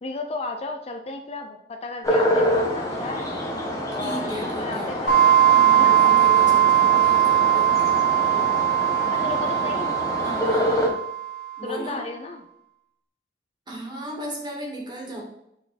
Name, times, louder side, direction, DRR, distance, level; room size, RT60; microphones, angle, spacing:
voice 1, 0.0-3.3 3.9-5.4 5.7-5.9 8.3-8.5 9.1-10.0 11.6-12.4, left 3 dB, 35° left, 4 dB, 0.6 m, -34 dB
sound 1, 2.0-10.9, equal, 20° left, 1.2 m, -26 dB
voice 2, 4.0-4.9 5.4-8.0 10.2-10.7 11.6-12.0 13.7-15.2, equal, 25° right, -2 dB, 2.0 m, -35 dB
sound 2, 5.1-11.6, right 11 dB, 80° left, 1.8 m, -19 dB
5.9 x 4.4 x 4.1 m, 0.77 s
head